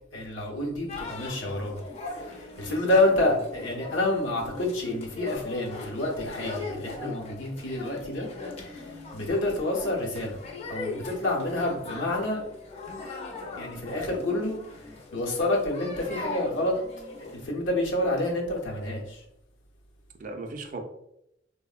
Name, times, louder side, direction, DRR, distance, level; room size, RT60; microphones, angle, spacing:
voice 1, 0.1-1.8 2.3-8.3 8.6-8.9 9.1-10.4 10.7-12.4 13.6-14.6 15.1-16.7 17.2-19.2, left 1 dB, 85° left, -1 dB, 0.7 m, -28 dB
sound 1, 0.9-17.4, left 3 dB, 35° left, 0.4 m, -40 dB
voice 2, 2.7-3.4 20.2-20.8, right 3 dB, 45° right, 5 dB, 0.3 m, -38 dB
3.4 x 2.0 x 2.3 m, 0.80 s
head